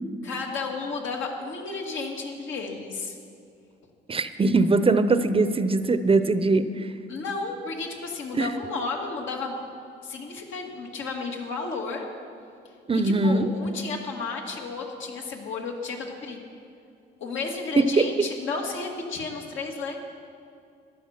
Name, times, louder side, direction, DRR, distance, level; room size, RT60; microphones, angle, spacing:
voice 1, 0.2-3.2 7.1-9.6 10.0-12.1 12.9-16.4 17.2-20.0, left 4 dB, 75° left, 0 dB, 2.2 m, -33 dB
voice 2, 4.1-6.9 8.4-8.5 12.9-13.5 17.8-18.0, right 3 dB, 30° right, 11 dB, 0.7 m, -21 dB
14.5 x 11.5 x 5.8 m, 2.4 s
cardioid pair, 90°, 20 cm